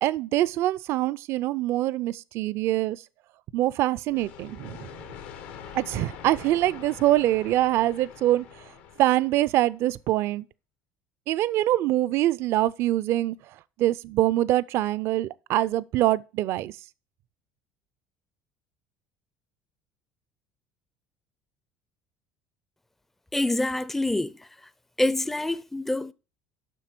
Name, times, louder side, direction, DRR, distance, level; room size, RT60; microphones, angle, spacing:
voice 1, 0.0-3.0 3.5-4.8 5.7-8.4 9.0-10.4 11.3-13.4 13.8-16.7, right 14 dB, 60° right, 0.4 m, -24 dB
sound 1, 4.1-9.8, left 8 dB, 85° left, 1.3 m, -44 dB
voice 2, 23.3-24.7 25.0-26.1, left 1 dB, 5° left, 0.4 m, -26 dB
7.7 x 5.7 x 5.9 m
supercardioid pair, 105°, 5 cm